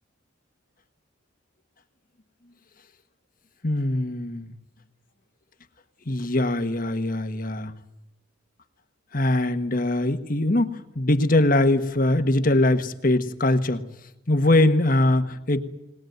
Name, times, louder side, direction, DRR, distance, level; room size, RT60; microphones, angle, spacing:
voice 1, 3.6-4.5 6.1-7.7 9.1-13.8 14.3-15.6, left 1 dB, 40° left, 9 dB, 1.3 m, -22 dB
21.0 x 19.5 x 9.3 m, 0.89 s
head